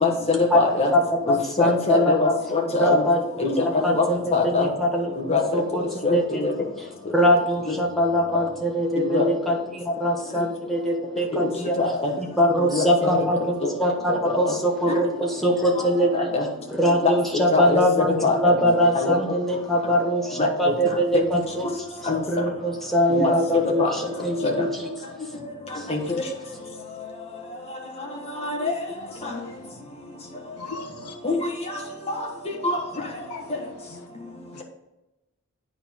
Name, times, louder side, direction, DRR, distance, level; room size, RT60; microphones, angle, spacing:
voice 1, 0.0-0.9 1.3-3.0 3.4-3.5 3.9-4.0 4.3-4.7 5.3-5.6 6.0-6.5 9.1-9.3 11.3-11.5 11.8-12.1 12.7-13.2 13.6-13.7 14.4-14.5 16.1-16.4 17.5-17.8 18.2-18.5 18.9-19.2 20.4-20.5 21.1-21.2 22.1-22.2 23.1-23.2 23.8-23.9 24.4-24.5 25.9-26.0 28.4-28.7 31.2-31.4, left 3 dB, 25° left, 1.3 m, -23 dB
voice 2, 0.9-2.1 2.7-3.2 3.6-5.8 6.1-6.4 7.1-11.8 12.2-16.3 16.7-21.8 22.3-24.9 25.7-25.9, equal, ahead, 1.1 m, -23 dB
voice 3, 29.2-29.7 30.6-31.1 33.3-33.5 33.9-34.0 34.5-34.6, left 4 dB, 75° left, 0.5 m, -39 dB
9.6 x 4.5 x 3.7 m
head